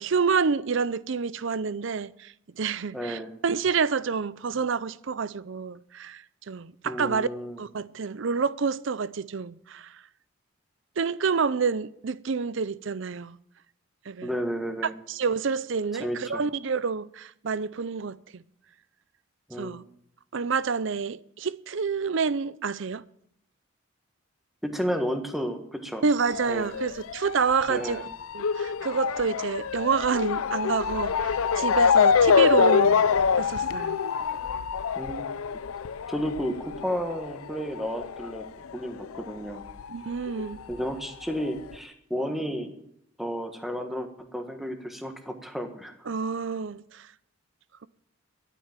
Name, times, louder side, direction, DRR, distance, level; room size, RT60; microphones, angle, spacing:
voice 1, 0.0-7.3 7.6-10.0 11.0-13.4 14.1-14.3 15.1-18.4 19.6-19.8 20.3-23.0 26.0-28.1 28.3-34.0 39.9-40.6 46.1-47.1, right 5 dB, 60° right, 0.5 m, -28 dB
voice 2, 2.9-3.3 6.8-7.6 14.2-14.9 16.0-16.4 19.5-19.7 24.6-26.0 26.5-26.7 27.7-28.0 34.9-35.3 36.1-38.4 38.7-39.6 40.7-42.8 43.2-45.9, equal, ahead, 1.5 m, -32 dB
Motor vehicle (road) / Siren, 26.3-39.3 39.6-40.8 41.4-41.5 41.7-41.8, left 6 dB, 85° left, 0.5 m, -25 dB
12.5 x 9.4 x 8.9 m
head